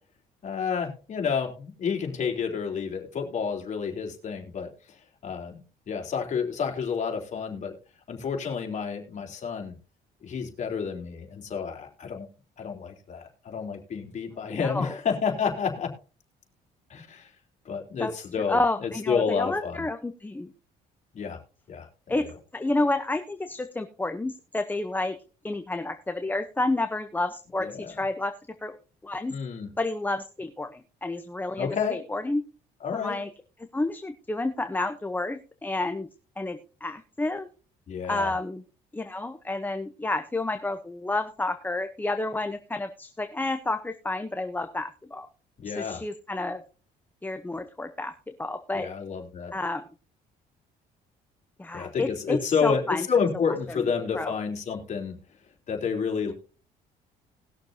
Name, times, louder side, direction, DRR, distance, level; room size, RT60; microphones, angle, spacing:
voice 1, 0.4-4.7 5.2-7.8 8.1-9.7 10.2-12.3 12.6-15.9 16.9-17.3 17.7-19.8 21.1-21.4 21.7-21.9 27.6-27.9 29.3-29.7 31.6-32.0 32.8-33.2 37.9-38.3 45.6-46.0 48.7-49.5 51.7-55.2 55.7-56.3, left 6 dB, 45° left, 2 dB, 3.5 m, -30 dB
voice 2, 14.5-15.0 18.0-18.1 18.5-20.5 22.1-22.2 22.5-25.2 25.4-28.3 28.6-28.8 29.0-29.3 29.8-32.4 32.9-33.3 33.7-36.1 36.4-37.5 38.1-38.6 38.9-45.3 45.7-46.6 47.2-48.9 49.5-49.8 51.6-53.1 53.7-53.8 54.1-54.3, left 2 dB, 10° left, 8 dB, 0.9 m, -30 dB
20.0 x 6.6 x 2.8 m, 0.36 s
cardioid pair, 110°, 17 cm